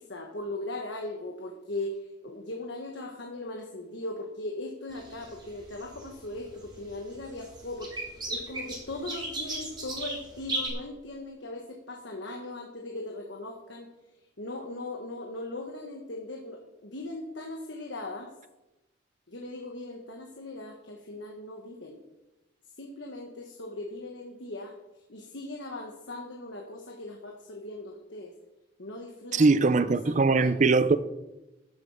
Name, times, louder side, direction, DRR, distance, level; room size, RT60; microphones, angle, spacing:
voice 1, 0.0-7.9 8.3-13.9 14.4-18.3 19.3-22.0 22.8-24.7 25.1-28.3 28.8-30.7, left 2 dB, 60° left, 1.4 m, -39 dB
sound 1, 4.9-10.7, right 2 dB, 20° right, 3.3 m, -37 dB
voice 2, 29.3-31.0, right 3 dB, 35° right, 0.5 m, -21 dB
13.0 x 9.7 x 4.9 m
head